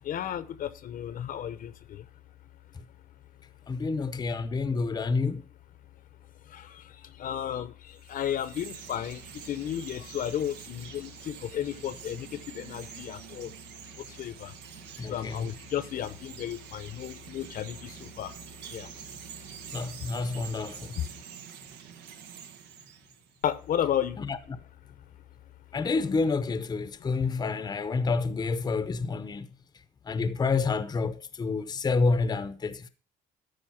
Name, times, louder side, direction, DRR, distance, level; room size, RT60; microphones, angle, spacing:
voice 1, 0.0-2.1 4.7-4.8 6.5-13.5 14.0-14.5 15.0-18.3 18.7-18.9 20.0-20.1 21.0-21.1 23.4-24.2 27.1-27.4, left 10 dB, 55° left, 0.8 m, -33 dB
voice 2, 3.7-5.4 15.0-15.5 19.7-20.9 24.2-24.4 25.7-29.5 30.1-32.9, left 4 dB, 25° left, 0.7 m, -28 dB
Chirp tweet, 7.9-23.5, right 8 dB, 90° right, 1.2 m, -46 dB
13.0 x 5.0 x 5.7 m
cardioid pair, 110°, 17 cm